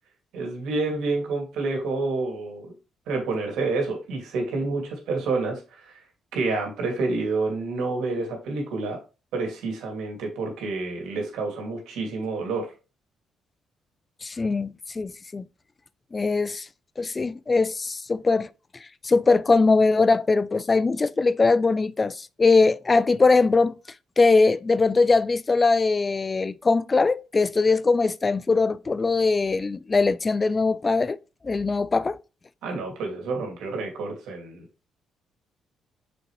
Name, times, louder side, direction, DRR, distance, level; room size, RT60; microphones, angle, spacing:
voice 1, 0.3-2.7 3.1-5.9 6.3-9.0 9.3-12.7 32.6-34.6, right 3 dB, 85° right, 2.5 m, -28 dB
voice 2, 14.2-15.5 16.1-16.7 17.0-18.5 19.0-23.7 24.2-31.2 31.4-32.2, left 3 dB, 30° left, 0.4 m, -21 dB
6.2 x 5.2 x 3.2 m
cardioid pair, 90°, 0 cm